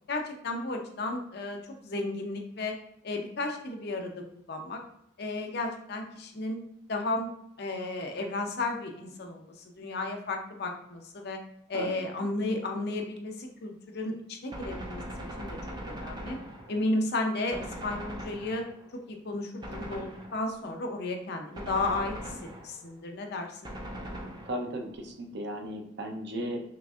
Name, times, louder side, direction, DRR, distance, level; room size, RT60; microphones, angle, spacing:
voice 1, 0.1-2.8 3.0-4.8 5.2-6.6 6.9-7.3 7.6-9.5 9.8-11.4 11.7-15.0 15.4-15.5 15.9-16.4 16.7-18.6 19.1-22.2 22.6-23.7, left 2 dB, 55° left, 3 dB, 0.6 m, -33 dB
Gunshot gunfire, 14.5-17.0 17.5-18.9 19.6-20.6 21.5-22.9 23.6-24.9, right 1 dB, 20° right, 0.6 m, -40 dB
voice 2, 24.4-26.6, right 1 dB, 60° right, 3 dB, 0.7 m, -35 dB
5.8 x 2.5 x 2.4 m, 0.72 s
head